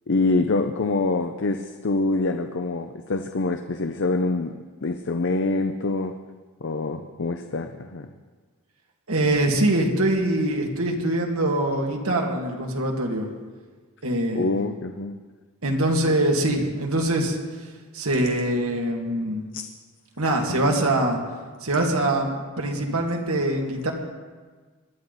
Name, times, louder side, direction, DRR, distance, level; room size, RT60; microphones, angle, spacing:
voice 1, 0.1-4.5 4.8-6.1 6.6-8.1 14.3-15.2 19.5-19.6 20.5-20.8, left 3 dB, 60° left, 7 dB, 0.7 m, -25 dB
voice 2, 9.1-13.3 14.0-14.5 15.6-17.4 17.9-19.4 20.2-21.2 21.6-23.9, right 1 dB, 80° right, 1 dB, 2.3 m, -23 dB
21.0 x 12.5 x 4.1 m, 1.4 s
head